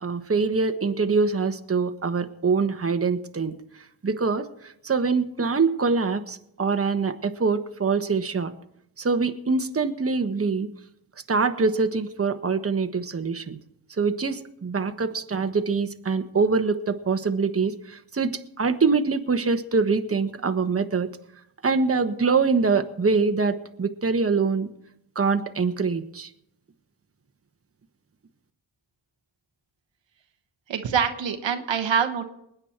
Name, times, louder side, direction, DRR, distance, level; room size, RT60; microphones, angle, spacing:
voice 1, 0.0-3.5 4.0-4.5 4.8-8.5 9.0-10.7 11.3-13.6 14.0-21.1 21.6-24.7 25.1-26.3, right 4 dB, 30° right, 7 dB, 1.3 m, -24 dB
voice 2, 30.7-32.2, right 7 dB, 75° right, 6 dB, 1.4 m, -25 dB
20.5 x 8.9 x 4.5 m, 0.76 s
supercardioid pair, 40°, 45 cm